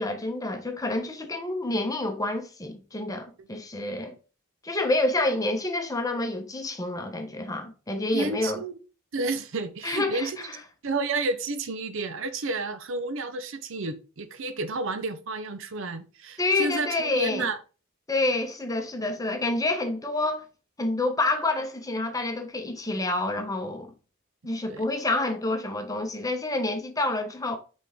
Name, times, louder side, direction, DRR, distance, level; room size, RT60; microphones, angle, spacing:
voice 1, 0.0-4.1 4.6-8.6 9.8-10.3 16.4-17.5 18.1-20.4 20.8-23.9 24.4-27.6, left 2 dB, 15° left, 1.0 m, -28 dB
voice 2, 8.1-8.8 9.1-10.5 10.8-17.6 24.7-24.8, right 3 dB, 65° right, 0.7 m, -31 dB
6.1 x 4.4 x 3.5 m
head